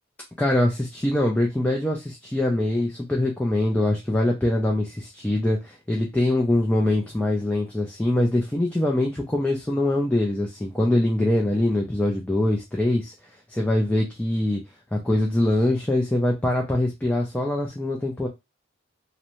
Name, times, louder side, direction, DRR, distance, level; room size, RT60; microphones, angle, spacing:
voice 1, 0.4-13.1 13.5-14.6 14.9-18.3, left 1 dB, 5° left, 0 dB, 0.3 m, -23 dB
2.6 x 2.1 x 2.9 m, 0.23 s
head